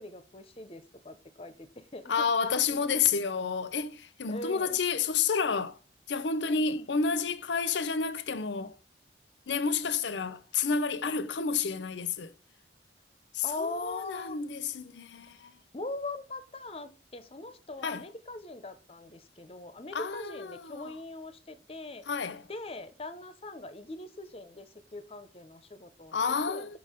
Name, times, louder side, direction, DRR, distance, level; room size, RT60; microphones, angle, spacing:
voice 1, 0.0-2.3 2.7-2.9 4.3-4.8 6.5-6.9 13.4-14.4 15.7-22.1 22.5-26.1 26.5-26.8, left 2 dB, 30° left, 0.7 m, -41 dB
voice 2, 2.1-5.8 6.1-8.8 9.5-12.3 13.3-15.6 17.8-18.0 19.9-21.0 22.1-22.5 26.1-26.8, left 5 dB, 75° left, 0.6 m, -30 dB
5.8 x 4.5 x 5.0 m
head